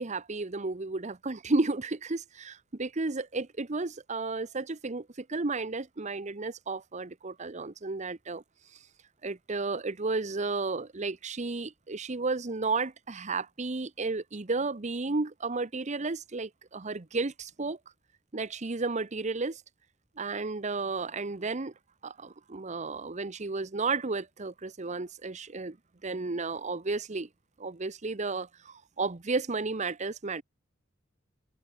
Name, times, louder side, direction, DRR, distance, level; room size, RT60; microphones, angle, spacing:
voice 1, 0.0-8.4 9.2-17.8 18.3-19.6 20.2-21.7 22.0-25.8 26.0-27.3 27.6-30.4, right 3 dB, 35° right, 0.9 m, -33 dB
head